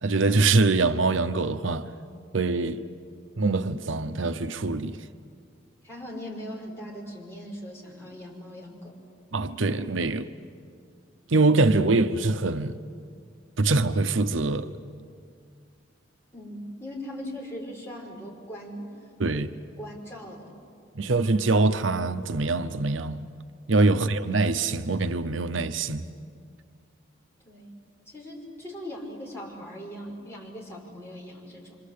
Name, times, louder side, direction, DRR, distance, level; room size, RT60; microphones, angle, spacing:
voice 1, 0.0-1.9 2.3-2.8 3.4-5.0 9.3-10.3 11.3-12.8 13.6-14.7 19.2-19.5 21.0-23.2 23.7-26.1, right 3 dB, 75° right, 0.8 m, -24 dB
voice 2, 5.8-8.9 16.3-18.9 19.3-19.4 19.8-20.6 23.8-23.9 27.5-27.7 28.1-31.8, equal, 15° left, 6.1 m, -40 dB
27.5 x 25.5 x 8.5 m
head